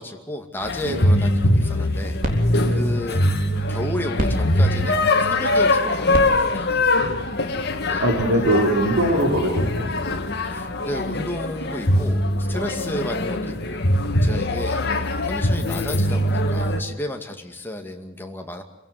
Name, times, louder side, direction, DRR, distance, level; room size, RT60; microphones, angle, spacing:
voice 1, 0.0-2.2 2.7-3.3 3.7-6.8 7.8-8.4 10.4-13.9 14.2-18.6, left 1 dB, 10° left, 3 dB, 2.3 m, -33 dB
sound 1, 0.6-16.8, left 1 dB, 55° left, 2.1 m, -22 dB
voice 2, 0.8-1.1 2.6-2.9 8.0-10.0, right 1 dB, 85° right, -1 dB, 5.3 m, -22 dB
sound 2, 1.6-8.1, equal, 40° right, 3.8 m, -34 dB
27.5 x 16.5 x 9.4 m, 0.92 s
head